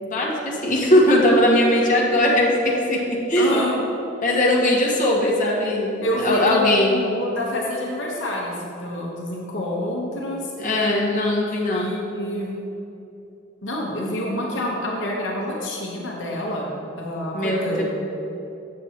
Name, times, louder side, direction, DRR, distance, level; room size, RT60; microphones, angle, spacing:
voice 1, 0.0-3.6 4.2-7.0 10.6-11.9 17.3-17.8, left 1 dB, 45° left, -4 dB, 1.1 m, -20 dB
voice 2, 3.4-3.8 6.0-10.5 11.5-12.6 13.6-17.8, left 1 dB, 75° left, -2 dB, 1.0 m, -28 dB
7.5 x 7.0 x 2.9 m, 3.0 s
head